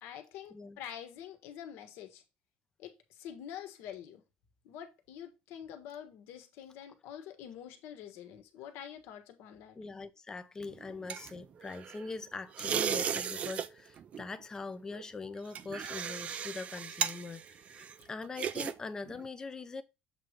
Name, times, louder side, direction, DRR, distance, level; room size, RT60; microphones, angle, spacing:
voice 1, 0.0-2.2 2.8-4.2 4.6-9.8 10.9-11.0 18.0-18.1, left 9 dB, 65° left, 1.4 m, -46 dB
voice 2, 9.8-19.8, left 4 dB, 15° left, 0.6 m, -42 dB
sound 1, 10.6-12.1 12.5-13.7 14.0-14.3 14.9-18.7 19.1-19.3, right 8 dB, 30° right, 0.4 m, -36 dB
7.4 x 3.2 x 5.0 m
cardioid pair, 170°, 4 cm